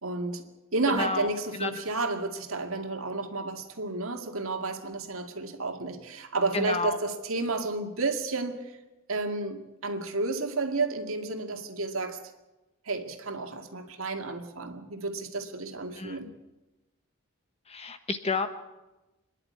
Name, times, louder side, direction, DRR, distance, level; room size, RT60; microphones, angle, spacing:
voice 1, 0.0-8.8 9.1-12.2 12.8-16.3, right 3 dB, 80° right, 5 dB, 2.2 m, -31 dB
voice 2, 0.9-1.3 1.6-1.7 6.5-7.0 15.9-16.2 17.7-18.6, left 3 dB, 30° left, 8 dB, 1.4 m, -30 dB
26.0 x 11.0 x 9.5 m, 1.0 s
head